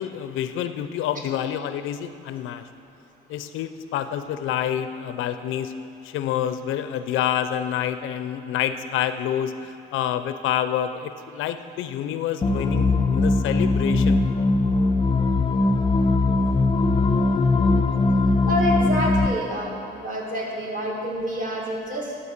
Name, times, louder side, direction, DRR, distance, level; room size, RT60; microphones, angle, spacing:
voice 1, 0.0-2.6 3.3-5.8 6.0-14.2, left 10 dB, 90° left, 11 dB, 0.5 m, -28 dB
sound 1, 12.4-19.3, left 3 dB, 25° left, 0.5 m, -20 dB
voice 2, 18.5-22.2, equal, 45° right, -3 dB, 2.3 m, -27 dB
11.5 x 4.4 x 7.1 m, 2.6 s
cardioid pair, 90°, 20 cm